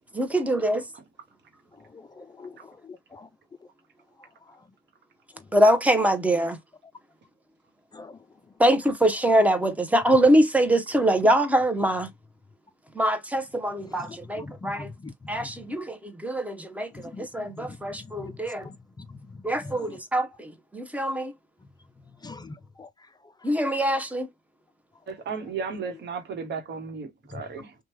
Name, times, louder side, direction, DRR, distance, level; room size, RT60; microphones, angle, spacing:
voice 1, 0.1-0.8 5.5-6.6 8.6-12.1 12.9-14.9 15.3-18.7 19.4-21.3 23.4-24.3, right 1 dB, 5° right, 0.8 m, -23 dB
voice 2, 1.9-3.3 7.9-8.2 14.1-15.1 15.4-15.5 16.9-17.3 17.6-17.8 18.2-18.3 18.6-19.1 19.6-19.8 22.2-22.9 27.3-27.4, left 3 dB, 20° left, 0.4 m, -42 dB
voice 3, 25.1-27.7, right 5 dB, 60° right, 1.0 m, -34 dB
2.9 x 2.2 x 3.1 m
cardioid pair, 90°, 20 cm